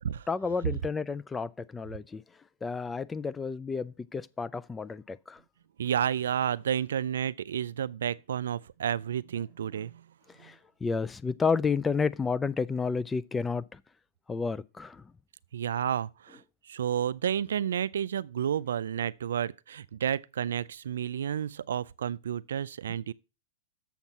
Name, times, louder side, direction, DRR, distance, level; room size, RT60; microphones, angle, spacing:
voice 1, 0.3-2.2 2.6-5.4 10.4-10.5 10.8-13.6 14.3-15.0, left 5 dB, 15° left, 0.4 m, -31 dB
voice 2, 5.8-10.0 10.4-10.5 15.5-16.4 16.7-23.1, right 9 dB, 90° right, 0.3 m, -31 dB
7.1 x 5.8 x 5.4 m
hypercardioid pair, 135°, 0 cm